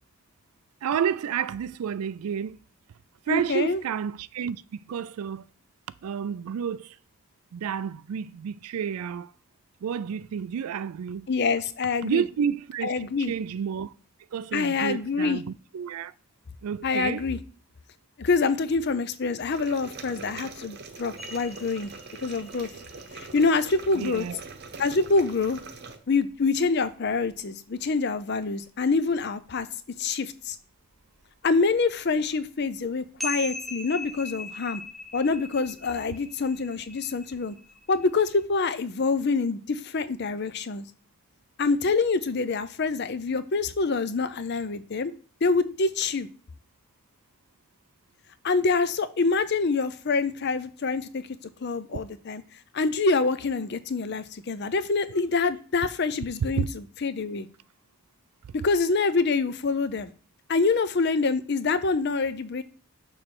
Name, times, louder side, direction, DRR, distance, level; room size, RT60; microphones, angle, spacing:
voice 1, 0.8-2.6 3.3-5.5 6.0-7.0 7.5-9.3 9.8-11.3 12.0-12.9 13.2-13.9 14.3-16.1 16.6-17.2 24.0-24.4 51.9-52.0 56.6-56.7, right 7 dB, 80° right, 0.3 m, -30 dB
voice 2, 3.3-3.8 11.3-12.2 12.8-13.3 14.5-15.4 16.8-17.4 18.2-21.9 22.2-22.7 23.1-24.3 24.8-25.6 26.1-29.7 30.0-30.6 31.4-34.8 35.1-37.6 37.9-40.8 41.6-45.1 45.4-46.3 48.4-51.3 51.6-52.4 52.7-57.5 58.6-60.1 60.5-62.6, left 4 dB, 50° left, 0.5 m, -26 dB
sound 1, 19.5-26.0, right 4 dB, 45° right, 0.8 m, -43 dB
sound 2, 21.2-27.4 27.8-27.9 28.2-29.6 30.0-30.1 30.4-38.4, left 2 dB, ahead, 0.6 m, -42 dB
6.5 x 3.2 x 6.0 m
head